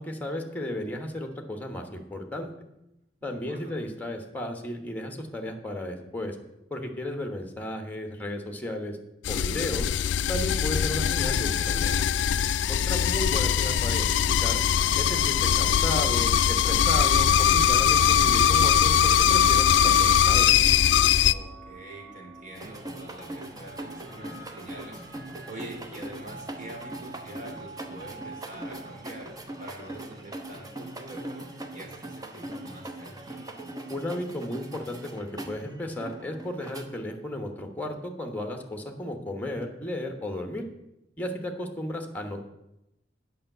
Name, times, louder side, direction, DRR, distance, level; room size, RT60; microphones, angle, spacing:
voice 1, 0.0-2.5 3.2-6.4 6.7-9.0 9.3-9.9 10.3-12.0 12.7-14.1 14.4-14.6 15.0-20.5 33.9-40.7 41.2-42.4, left 1 dB, 10° left, 4 dB, 1.2 m, -34 dB
voice 2, 3.2-3.8 13.0-13.1 21.2-33.6, right 1 dB, 45° right, -1 dB, 3.1 m, -45 dB
sound 1, 9.2-21.3, left 9 dB, 90° left, 0.4 m, -21 dB
sound 2, 14.2-33.7, right 2 dB, 75° right, 2.4 m, -48 dB
sound 3, 22.5-36.8, right 1 dB, 20° right, 1.0 m, -41 dB
8.7 x 5.6 x 7.9 m, 0.88 s
head